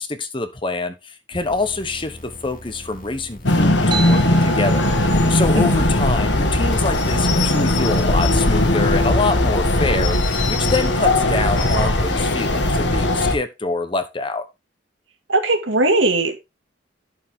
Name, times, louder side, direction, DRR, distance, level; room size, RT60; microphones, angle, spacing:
voice 1, 0.0-14.5, left 3 dB, 25° left, 1.0 m, -26 dB
sound 1, 1.3-11.8, left 1 dB, 45° left, 2.2 m, -41 dB
sound 2, 3.4-13.4, left 1 dB, 70° left, 1.6 m, -18 dB
sound 3, 3.9-8.9, right 8 dB, 25° right, 1.3 m, -34 dB
voice 2, 15.3-16.4, right 2 dB, 80° right, 2.3 m, -19 dB
11.5 x 6.7 x 3.7 m
head